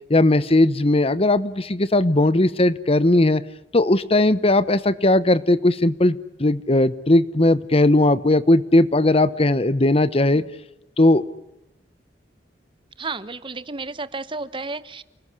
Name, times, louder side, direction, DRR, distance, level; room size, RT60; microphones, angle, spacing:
voice 1, 0.1-3.4 3.7-10.4 11.0-11.2, left 2 dB, 35° left, 16 dB, 1.0 m, -18 dB
voice 2, 13.0-15.0, right 3 dB, 30° right, 16 dB, 1.0 m, -32 dB
29.5 x 19.5 x 9.7 m, 0.89 s
head